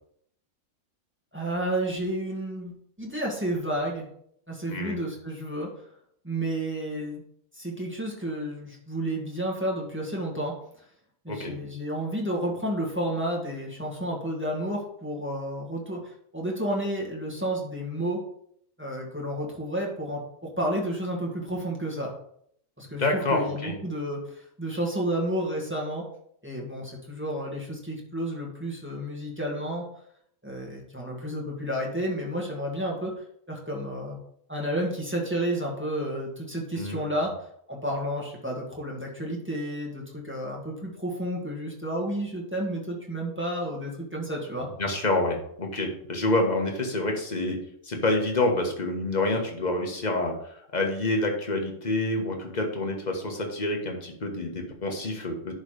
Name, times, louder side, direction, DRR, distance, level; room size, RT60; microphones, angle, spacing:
voice 1, 1.3-2.7 3.0-4.1 4.5-5.7 6.2-7.2 7.5-10.5 11.2-18.2 18.8-22.1 22.8-26.1 26.4-29.9 30.4-33.1 33.5-34.2 34.5-37.3 37.7-44.7, right 1 dB, 10° right, -2 dB, 1.8 m, -31 dB
voice 2, 4.7-5.0 11.3-11.5 23.0-23.8 36.8-37.1 44.8-47.6 47.8-50.3 50.7-55.6, left 2 dB, 30° left, 2 dB, 1.5 m, -27 dB
11.0 x 4.1 x 5.1 m, 0.69 s
omnidirectional pair, 1.4 m